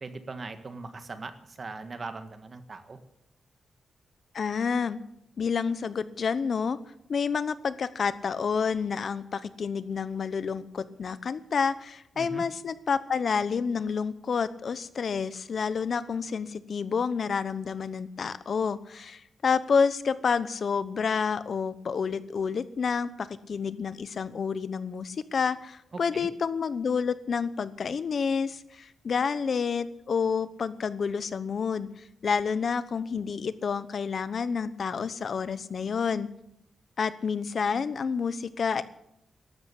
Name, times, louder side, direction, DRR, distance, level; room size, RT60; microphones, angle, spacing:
voice 1, 0.0-3.0 12.1-12.4 25.9-26.3, right 3 dB, 40° right, 9 dB, 1.7 m, -40 dB
voice 2, 4.3-5.0 5.4-6.8 7.1-31.9 32.2-36.3 37.0-38.8, left 6 dB, 55° left, 15 dB, 0.9 m, -29 dB
13.5 x 12.5 x 8.4 m, 0.77 s
wide cardioid pair, 140°, 0 cm